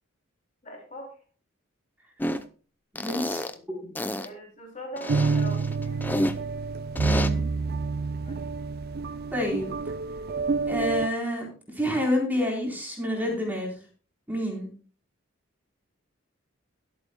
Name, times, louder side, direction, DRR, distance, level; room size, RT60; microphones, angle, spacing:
voice 1, 0.6-1.1 4.2-6.2 8.2-8.4, equal, 35° left, 1 dB, 3.0 m, -41 dB
sound 1, 2.2-2.4 3.0-3.5 4.0-4.3 5.0-6.3 7.0-7.3, equal, 10° left, 0.6 m, -29 dB
voice 2, 2.9-3.4 7.0-7.5 9.3-9.7 10.7-11.5 11.7-13.8 14.3-14.7, left 1 dB, 10° right, -1 dB, 3.9 m, -28 dB
sound 2, 5.1-11.1, right 4 dB, 45° right, 0.4 m, -28 dB
22.5 x 8.3 x 2.2 m, 0.38 s
head